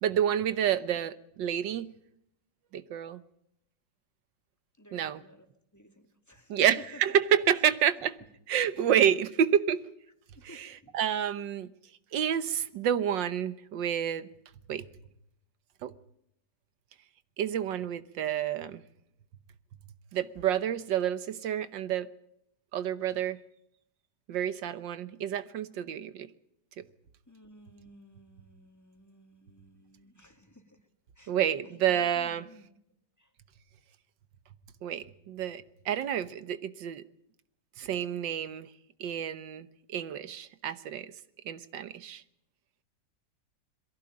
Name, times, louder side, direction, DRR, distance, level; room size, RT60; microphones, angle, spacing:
voice 1, 0.0-1.9 2.7-3.2 4.9-5.2 6.5-8.2 8.5-9.8 10.5-10.7 10.9-11.7 12.1-14.3 14.7-14.9 15.8-15.9 17.4-18.8 20.1-22.1 22.7-23.4 24.3-26.3 26.8-26.9 31.3-32.5 34.8-37.0 37.8-38.7 39.0-41.1 41.5-42.2, right 9 dB, 90° right, 1.7 m, -29 dB
voice 2, 4.8-5.4 5.7-6.7 7.1-7.2 7.5-7.6 8.8-8.9 10.3-10.9 27.3-30.8 31.2-31.4 31.7-32.7 33.2-33.3, equal, 10° left, 2.7 m, -55 dB
23.0 x 15.5 x 8.7 m
omnidirectional pair, 1.9 m